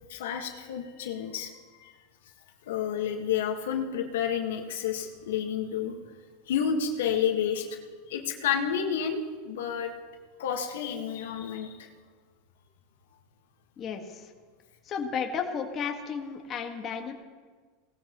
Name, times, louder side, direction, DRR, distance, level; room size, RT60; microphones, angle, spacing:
voice 1, 0.1-1.5 1.8-1.9 2.7-6.0 6.5-7.8 8.1-9.9 10.4-11.9, left 8 dB, 85° left, 3 dB, 1.6 m, -30 dB
voice 2, 13.8-14.3 14.9-17.1, left 6 dB, 35° left, 3 dB, 1.6 m, -33 dB
18.5 x 13.5 x 3.1 m, 1.5 s
supercardioid pair, 115°, 0 cm